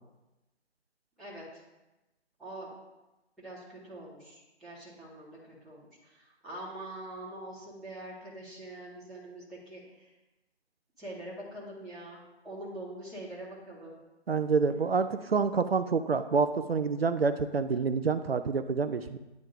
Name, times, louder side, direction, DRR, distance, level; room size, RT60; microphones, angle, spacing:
voice 1, 3.4-10.1 11.0-14.0, right 1 dB, ahead, -16 dB, 1.1 m, -44 dB
voice 2, 14.3-19.2, right 5 dB, 60° right, 10 dB, 0.5 m, -27 dB
10.5 x 3.5 x 2.7 m, 1.0 s
figure-of-eight pair, 150°, 34 cm